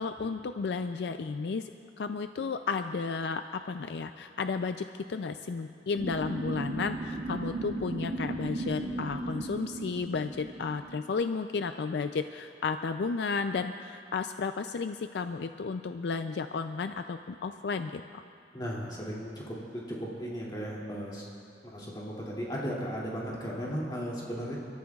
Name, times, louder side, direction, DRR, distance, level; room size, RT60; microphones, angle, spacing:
voice 1, 0.0-1.7 2.0-18.2, left 4 dB, 65° left, 8 dB, 0.4 m, -33 dB
sound 1, 6.0-11.0, right 2 dB, 35° right, 0.9 m, -36 dB
voice 2, 18.5-21.2 21.6-24.6, equal, 25° left, -5 dB, 2.5 m, -36 dB
29.5 x 13.5 x 2.4 m, 2.5 s
head